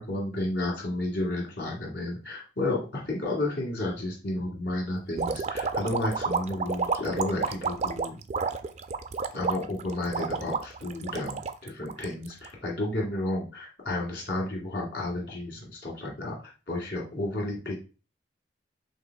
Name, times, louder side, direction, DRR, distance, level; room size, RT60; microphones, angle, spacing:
voice 1, 0.0-8.2 9.3-17.8, left 1 dB, 60° left, -2 dB, 1.9 m, -32 dB
sound 1, 5.2-12.5, right 5 dB, 35° right, 0.3 m, -30 dB
5.5 x 3.5 x 2.2 m, 0.34 s
head